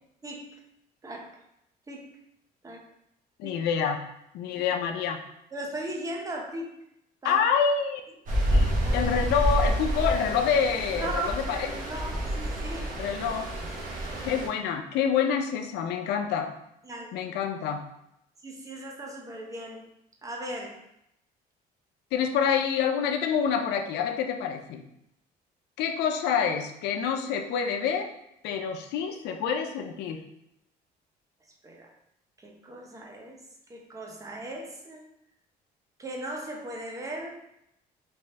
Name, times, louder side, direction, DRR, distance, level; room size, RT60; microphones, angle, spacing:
voice 1, 1.0-1.4 1.9-2.1 2.6-2.9 3.4-3.6 4.6-4.7 5.5-6.8 7.2-7.4 8.8-9.1 10.9-12.9 14.1-14.3 16.8-17.1 18.4-19.8 20.2-20.8 31.6-31.9 32.4-33.4 33.7-35.0 36.0-37.4, right 1 dB, 20° right, 0 dB, 0.7 m, -37 dB
voice 2, 3.4-4.0 4.3-5.2 7.2-8.0 8.5-11.8 13.0-13.5 14.2-16.5 17.1-17.8 22.1-24.8 25.8-28.1 28.4-30.2, left 7 dB, 80° left, 6 dB, 0.5 m, -27 dB
Stream, 8.3-14.5, equal, 50° right, 0.9 m, -28 dB
3.5 x 2.6 x 3.2 m, 0.80 s
cardioid pair, 110°, 17 cm